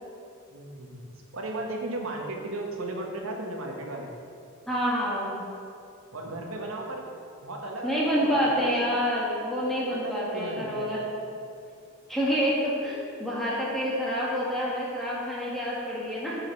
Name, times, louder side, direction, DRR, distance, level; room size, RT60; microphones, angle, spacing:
voice 1, 0.5-4.1 6.1-7.1 7.4-8.7 9.9-10.9, right 2 dB, 80° right, 1 dB, 1.1 m, -35 dB
voice 2, 4.7-5.4 7.8-11.0 12.1-16.4, equal, ahead, -7 dB, 1.7 m, -27 dB
7.7 x 5.0 x 5.3 m, 2.5 s
head